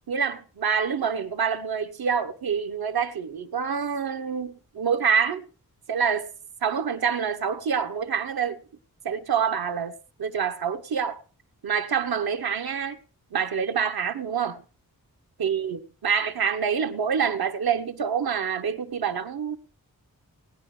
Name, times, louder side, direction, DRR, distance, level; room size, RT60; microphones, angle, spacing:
voice 1, 0.1-5.4 5.9-6.3 6.6-8.6 9.0-9.9 10.2-11.2 11.6-13.0 13.3-14.6 15.4-19.6, right 7 dB, 85° right, 1.1 m, -26 dB
18.5 x 10.0 x 3.3 m
wide cardioid pair, 110°, 36 cm